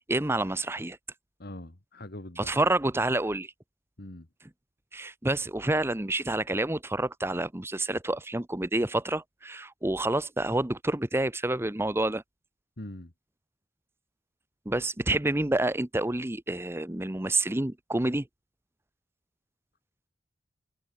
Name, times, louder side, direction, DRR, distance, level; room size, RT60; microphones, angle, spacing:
voice 1, 0.1-1.0 2.4-3.5 4.9-12.2 14.7-18.3, right 2 dB, 15° right, 0.8 m, -28 dB
voice 2, 1.4-2.6 4.0-4.3 12.8-13.1, left 1 dB, 55° left, 1.8 m, -42 dB
head